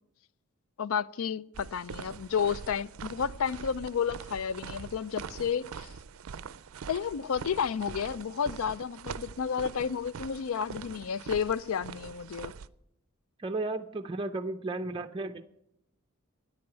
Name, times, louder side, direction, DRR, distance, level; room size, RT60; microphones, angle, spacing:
voice 1, 0.8-5.9 6.9-12.5, left 7 dB, 75° left, 0.4 m, -31 dB
sound 1, 1.5-12.7, right 6 dB, 80° right, 0.4 m, -43 dB
voice 2, 13.4-15.4, right 2 dB, 25° right, 0.4 m, -34 dB
9.8 x 8.6 x 8.9 m
head